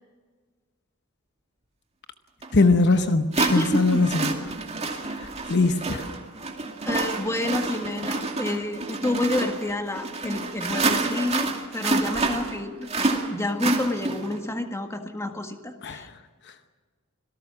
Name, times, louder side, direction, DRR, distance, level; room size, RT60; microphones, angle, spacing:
sound 1, 2.4-2.5 3.3-14.4, right 3 dB, 30° right, 2.4 m, -28 dB
voice 1, 2.5-4.3 5.1-6.1 15.8-16.1, left 3 dB, 55° left, 1.0 m, -22 dB
voice 2, 3.4-4.0 6.8-16.1, left 1 dB, 15° left, 1.7 m, -29 dB
26.0 x 18.0 x 6.2 m
head